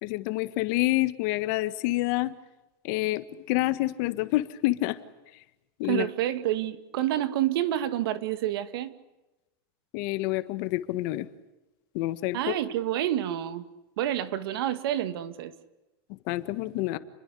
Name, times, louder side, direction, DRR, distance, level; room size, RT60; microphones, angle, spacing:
voice 1, 0.0-2.3 2.8-5.0 5.8-6.1 9.9-11.3 11.9-12.4 16.3-17.0, left 18 dB, 45° left, 1.7 m, -27 dB
voice 2, 5.9-8.9 12.3-13.7 14.0-15.5, right 12 dB, 70° right, 2.2 m, -28 dB
29.5 x 22.0 x 8.5 m
supercardioid pair, 165°, 13 cm